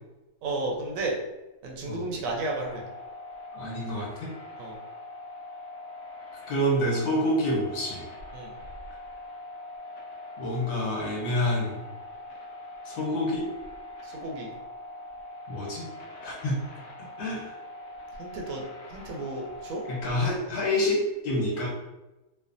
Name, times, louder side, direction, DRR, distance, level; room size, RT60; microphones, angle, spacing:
voice 1, 0.4-1.2 1.6-2.8 4.6-4.8 8.3-8.5 14.0-14.5 18.2-18.6 18.9-19.8, right 2 dB, 70° right, 0 dB, 0.9 m, -32 dB
sound 1, 2.4-20.0, left 1 dB, 70° left, 1.0 m, -43 dB
voice 2, 3.5-4.1 6.5-8.0 10.4-11.8 12.8-13.5 15.5-15.8 16.2-16.6 17.2-17.5 19.9-21.0 21.2-21.7, left 1 dB, 90° left, -3 dB, 1.4 m, -27 dB
3.2 x 2.0 x 2.6 m, 1.0 s
omnidirectional pair, 1.6 m